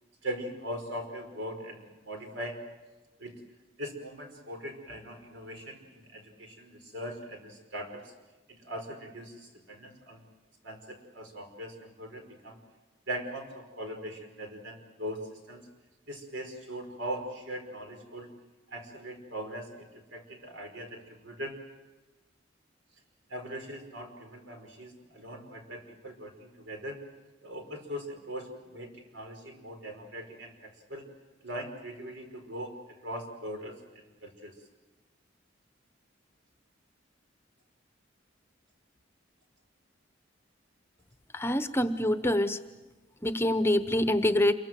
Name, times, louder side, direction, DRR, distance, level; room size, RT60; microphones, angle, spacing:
voice 1, 0.2-2.6 3.2-3.3 3.8-8.1 8.6-10.2 10.6-12.6 13.1-15.6 16.1-18.3 18.7-21.6 23.3-27.0 27.4-31.1 31.4-33.8 34.2-34.5, equal, 80° right, 4 dB, 5.2 m, -40 dB
voice 2, 41.3-42.6 43.2-44.5, left 1 dB, 15° left, 10 dB, 0.9 m, -25 dB
28.0 x 23.5 x 7.7 m, 1.2 s
head